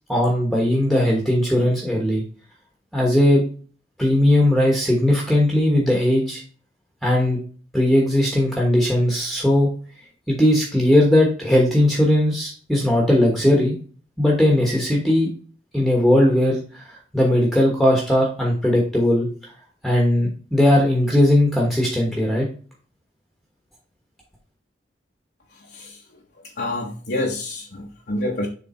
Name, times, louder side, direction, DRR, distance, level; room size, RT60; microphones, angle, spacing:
voice 1, 0.1-2.2 2.9-3.4 4.0-6.4 7.0-7.4 7.7-9.7 10.3-13.7 14.2-15.3 15.7-19.3 19.8-22.5, left 1 dB, ahead, -1 dB, 1.2 m, -18 dB
voice 2, 26.6-28.5, left 1 dB, 60° left, -1 dB, 1.0 m, -27 dB
7.1 x 3.3 x 4.3 m, 0.40 s
head